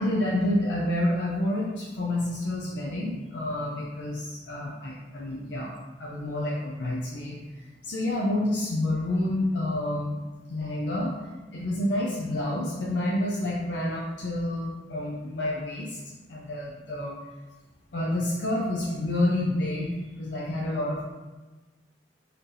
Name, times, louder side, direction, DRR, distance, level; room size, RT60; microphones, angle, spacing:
voice 1, 0.0-10.2 10.5-11.1 11.5-16.0 16.3-17.2 17.9-21.0, left 1 dB, 80° left, -5 dB, 0.6 m, -29 dB
4.0 x 3.3 x 2.7 m, 1.2 s
head